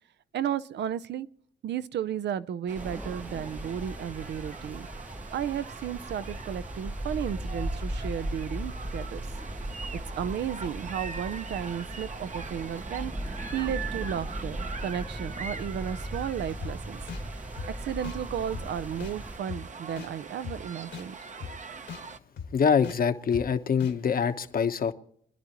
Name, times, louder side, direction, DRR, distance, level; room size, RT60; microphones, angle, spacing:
voice 1, 0.3-1.3 1.6-4.9 5.3-9.2 9.9-17.0 17.8-21.2, right 9 dB, 70° right, 0.7 m, -34 dB
sound 1, 2.7-22.2, right 5 dB, 40° right, 1.0 m, -42 dB
sound 2, 2.8-19.4, right 1 dB, 5° right, 0.6 m, -38 dB
sound 3, 16.6-16.7 17.1-17.2 17.6-17.7 18.0-18.2 18.5-18.7 19.0-19.1 19.5-19.6 20.0-20.1 20.4-20.6 20.9-21.1 21.4-21.5 21.9-22.0 22.4-22.5 22.8-23.0 23.3-23.5 23.8-23.9, left 7 dB, 70° left, 1.9 m, -38 dB
voice 2, 22.5-24.9, left 6 dB, 50° left, 1.2 m, -25 dB
25.0 x 11.0 x 3.1 m
cardioid pair, 65°, 19 cm